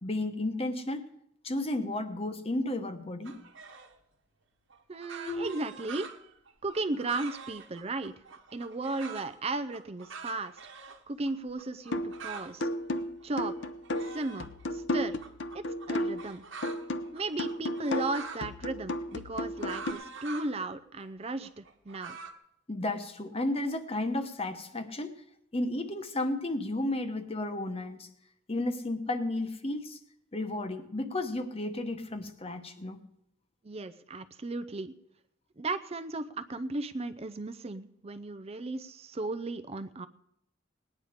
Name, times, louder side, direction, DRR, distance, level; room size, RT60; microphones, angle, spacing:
voice 1, 0.0-1.1 1.4-3.4 5.2-5.5 22.7-25.2 25.5-28.1 28.5-30.0 30.3-33.0, left 2 dB, 30° left, 8 dB, 1.0 m, -33 dB
sound 1, 3.2-4.0 4.7-9.3 9.7-11.0 11.2-11.3 11.6-12.5 12.9-14.6 15.2-18.5 18.9-20.5 21.0-22.3, right 5 dB, 70° right, 1.2 m, -45 dB
voice 2, 4.9-6.1 6.6-8.1 8.5-10.5 11.1-12.7 13.2-13.7 14.1-15.2 15.5-16.4 17.1-22.2 33.6-34.9 35.6-40.1, right 2 dB, 30° right, 10 dB, 0.5 m, -35 dB
sound 2, 11.9-12.2 12.6-16.3 16.6-19.9, left 1 dB, 65° left, 0.9 m, -33 dB
19.0 x 9.6 x 5.0 m, 0.76 s
head